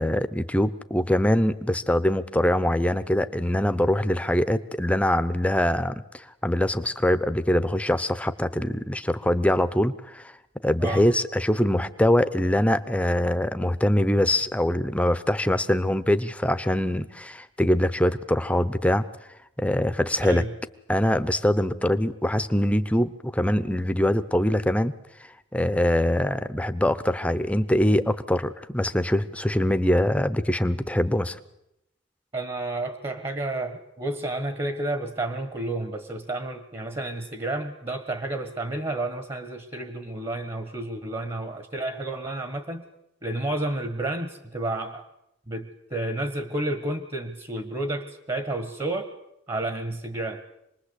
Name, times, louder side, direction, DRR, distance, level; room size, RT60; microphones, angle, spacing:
voice 1, 0.0-10.3 10.6-19.1 19.6-20.4 20.9-24.9 25.5-31.4, left 1 dB, 5° left, 11 dB, 0.9 m, -23 dB
voice 2, 32.3-42.8 43.2-45.0 45.5-49.1 49.5-50.4, right 2 dB, 25° right, 9 dB, 1.5 m, -31 dB
27.0 x 20.5 x 8.3 m, 0.83 s
head